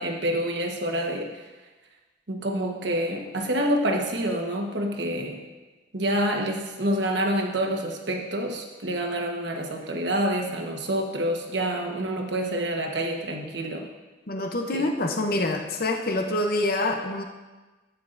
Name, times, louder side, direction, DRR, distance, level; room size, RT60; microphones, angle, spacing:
voice 1, 0.0-1.4 2.3-5.4 5.9-13.9 14.7-14.9, right 1 dB, 65° right, 1 dB, 1.2 m, -27 dB
voice 2, 14.3-17.2, left 2 dB, 50° left, 3 dB, 0.7 m, -26 dB
13.0 x 9.3 x 2.6 m, 1.2 s
head